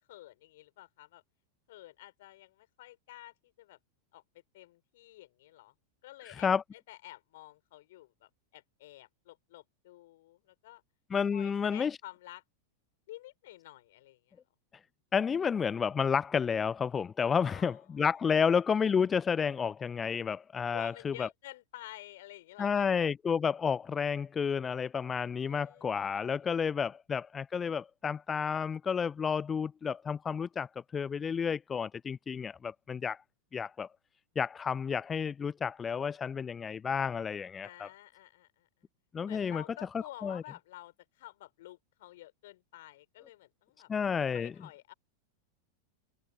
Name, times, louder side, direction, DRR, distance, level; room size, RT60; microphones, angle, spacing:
voice 1, 0.1-1.2 1.7-3.8 4.1-4.2 4.5-5.7 6.0-6.5 6.9-10.8 11.3-12.4 13.1-14.4 17.4-18.0 18.4-18.5 20.7-22.9 25.4-26.5 37.6-38.7 39.3-43.9 44.3-44.9, left 16 dB, 55° left, 4.1 m, -51 dB
voice 2, 6.2-6.6 11.1-12.0 15.1-21.3 22.6-33.2 33.5-33.9 34.4-37.9 39.1-39.6 40.2-40.4 43.9-44.5, left 6 dB, 20° left, 0.5 m, -31 dB
figure-of-eight pair, 90°, 0 cm